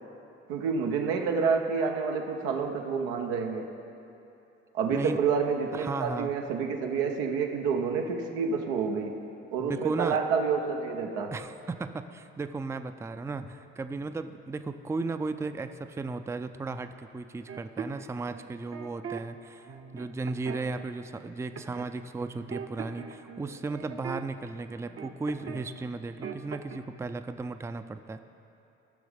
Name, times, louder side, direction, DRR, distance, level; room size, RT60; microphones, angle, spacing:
voice 1, 0.5-3.7 4.7-9.3 9.5-11.3, right 5 dB, 85° right, 3 dB, 0.7 m, -28 dB
voice 2, 4.9-5.2 5.7-6.3 9.6-10.2 11.3-28.2, right 3 dB, 10° right, 10 dB, 0.4 m, -35 dB
sound 1, 17.5-19.2 19.7-20.9 21.6-21.9 22.2-25.7 25.9-26.8, right 7 dB, 50° right, 0.8 m, -41 dB
15.0 x 6.2 x 3.4 m, 2.8 s
hypercardioid pair, 50°, 29 cm